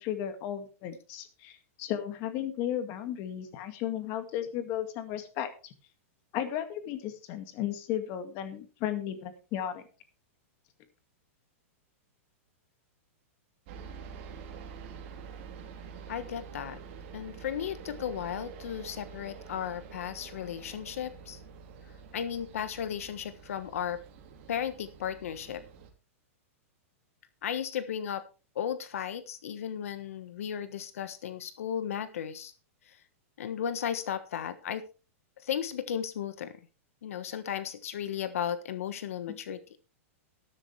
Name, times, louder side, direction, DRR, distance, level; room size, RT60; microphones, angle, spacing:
voice 1, 0.0-5.7 6.3-9.8 39.3-39.4, left 10 dB, 35° left, 8 dB, 2.1 m, -35 dB
sound 1, 13.7-25.9, right 6 dB, 45° right, 3.9 m, -47 dB
voice 2, 16.1-16.8 17.1-21.4 22.1-24.0 24.5-25.6 27.4-28.2 28.5-32.5 32.9-33.0 33.4-34.8 35.4-36.6 37.0-39.6, left 9 dB, 75° left, 11 dB, 1.3 m, -35 dB
13.0 x 12.5 x 3.3 m, 0.34 s
supercardioid pair, 165°, 8 cm